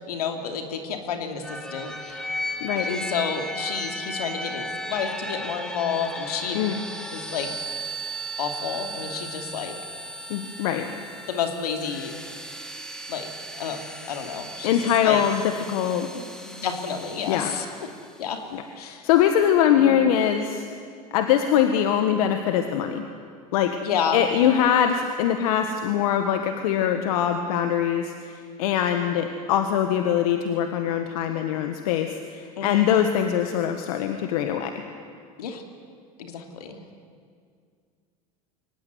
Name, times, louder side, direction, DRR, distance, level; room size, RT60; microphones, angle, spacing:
voice 1, 0.1-2.3 2.8-6.6 7.1-7.5 8.4-9.7 11.3-12.1 13.1-13.3 13.6-15.2 16.4-17.7 18.2-18.4 18.8-19.1 19.8-20.0 23.8-24.2 32.6-32.9 35.4-35.6 36.2-36.8, left 6 dB, 90° left, 4 dB, 2.8 m, -30 dB
sound 1, 1.4-18.2, equal, 5° left, 2.4 m, -36 dB
voice 2, 10.3-10.9 14.6-16.2 17.3-17.5 18.5-20.6 21.1-23.0 23.5-23.8 24.1-34.8, left 9 dB, 75° left, 6 dB, 1.6 m, -23 dB
23.5 x 19.0 x 9.6 m, 2.2 s
hypercardioid pair, 95°, 19 cm